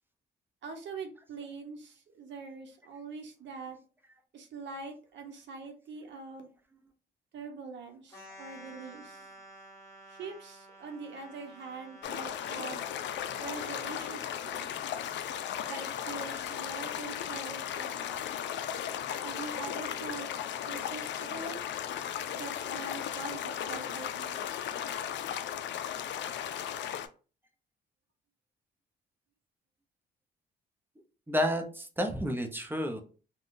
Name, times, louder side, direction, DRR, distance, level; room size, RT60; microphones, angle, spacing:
voice 1, 0.6-3.8 4.3-6.5 7.3-9.3 10.1-12.8 13.4-14.7 15.7-18.3 19.2-21.6 22.3-24.5, right 4 dB, 65° right, 4 dB, 0.9 m, -44 dB
sound 1, 8.1-13.9, right 1 dB, 15° left, 1.1 m, -52 dB
sound 2, 12.0-27.1, left 9 dB, 65° left, 0.4 m, -36 dB
voice 2, 31.3-33.0, equal, 10° right, 5 dB, 0.6 m, -31 dB
3.5 x 2.2 x 2.5 m, 0.36 s
cardioid pair, 90°, 20 cm